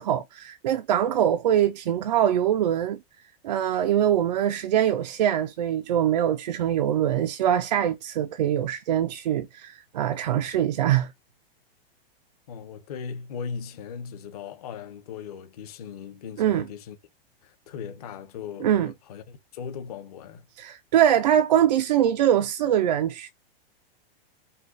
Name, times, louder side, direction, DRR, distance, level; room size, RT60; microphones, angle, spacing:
voice 1, 0.0-3.0 3.4-11.1 16.4-16.6 18.6-18.9 20.6-23.3, right 10 dB, 45° right, 0.4 m, -23 dB
voice 2, 12.5-17.0 17.4-20.5, left 6 dB, 40° left, 0.9 m, -38 dB
5.2 x 2.3 x 3.8 m
supercardioid pair, 175°, 30 cm